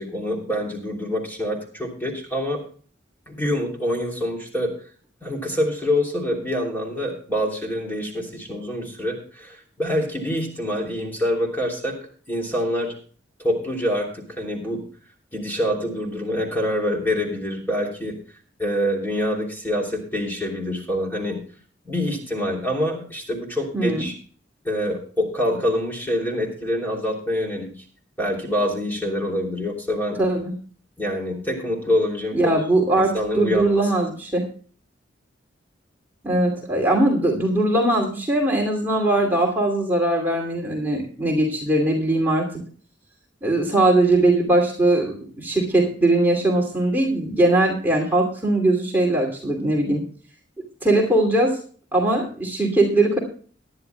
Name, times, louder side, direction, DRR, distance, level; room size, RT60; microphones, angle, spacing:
voice 1, 0.0-2.6 3.3-4.7 5.2-11.9 12.3-12.9 13.4-14.8 15.3-18.2 18.6-21.4 21.8-24.1 24.6-27.7 28.2-30.2 31.0-32.5 33.0-33.8, left 1 dB, 10° left, 0 dB, 3.0 m, -25 dB
voice 2, 23.7-24.1 30.2-30.5 32.3-34.4 36.2-42.5 43.4-50.0 50.8-51.6 51.9-53.2, right 2 dB, 10° right, -1 dB, 2.6 m, -20 dB
21.0 x 10.5 x 2.2 m, 0.43 s
head